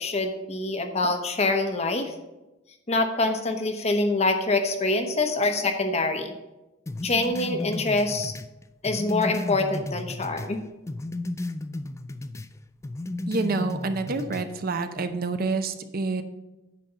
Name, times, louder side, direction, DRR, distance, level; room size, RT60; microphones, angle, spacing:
voice 1, 0.0-2.1 2.9-6.3 7.0-8.3 8.8-10.6, left 2 dB, 35° left, 6 dB, 0.9 m, -25 dB
sound 1, 6.9-10.5 10.9-12.5 12.8-14.5, left 2 dB, 15° left, 0.3 m, -34 dB
voice 2, 13.3-16.2, right 3 dB, 50° right, 9 dB, 0.6 m, -28 dB
9.7 x 4.2 x 6.7 m, 1.0 s
head